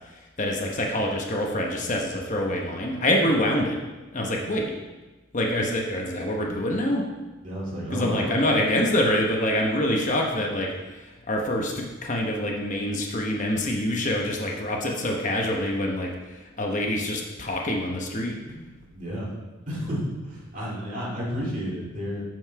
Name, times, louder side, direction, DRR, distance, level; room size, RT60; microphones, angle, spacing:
voice 1, 0.4-3.8 4.1-4.7 5.3-7.0 7.9-16.1 16.6-18.4, left 1 dB, 35° left, 0 dB, 0.9 m, -25 dB
voice 2, 7.4-8.3 18.3-18.7 18.9-19.3 19.7-22.2, equal, 35° right, -6 dB, 2.3 m, -31 dB
7.1 x 6.2 x 4.7 m, 1.2 s
head